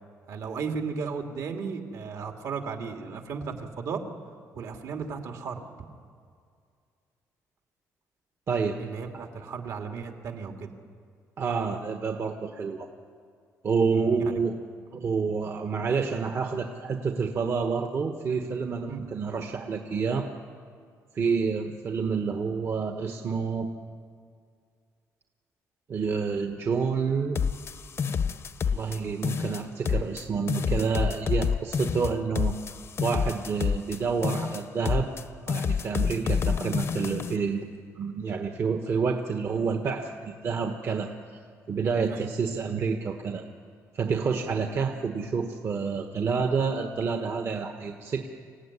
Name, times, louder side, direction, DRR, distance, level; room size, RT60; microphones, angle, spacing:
voice 1, 0.3-4.0 4.5-5.6 8.8-10.7 13.9-14.4 18.9-19.0 21.2-21.4 36.1-36.2 42.1-42.3, right 5 dB, 65° right, 3 dB, 2.6 m, -35 dB
voice 2, 8.5-8.8 11.4-12.9 13.6-14.6 14.9-20.3 21.1-23.7 25.9-27.4 28.7-32.5 33.0-35.1 35.5-37.6 38.0-41.1 41.7-43.4 43.9-48.3, right 5 dB, 45° right, 5 dB, 1.3 m, -28 dB
sound 1, 27.3-29.0 29.2-30.2 30.5-34.0 34.2-35.2 35.5-37.4, left 6 dB, 45° left, 0.8 m, -28 dB
26.5 x 16.0 x 9.8 m, 2.2 s
cardioid pair, 135°, 6 cm